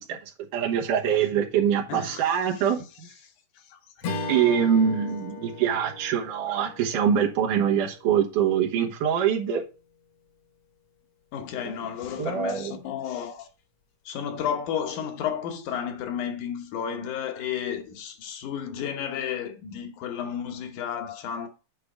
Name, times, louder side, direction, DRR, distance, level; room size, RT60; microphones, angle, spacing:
voice 1, 0.5-2.8 4.3-9.6 11.6-11.7 12.2-12.8, right 8 dB, 85° right, 2.8 m, -24 dB
voice 2, 1.9-2.3 3.7-3.8 11.3-13.5 14.1-21.5, left 8 dB, 75° left, 2.4 m, -32 dB
Strum, 4.0-8.6, left 3 dB, 60° left, 1.7 m, -37 dB
8.6 x 3.5 x 4.9 m
omnidirectional pair, 3.6 m